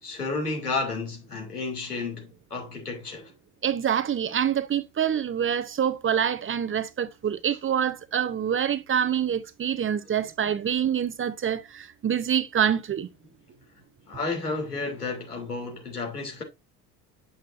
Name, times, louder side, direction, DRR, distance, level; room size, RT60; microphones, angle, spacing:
voice 1, 0.0-3.3 14.1-16.4, left 3 dB, 85° left, 2.9 m, -32 dB
voice 2, 3.6-13.1, right 9 dB, 25° right, 0.9 m, -26 dB
8.9 x 7.2 x 2.6 m
figure-of-eight pair, 60°, 45 cm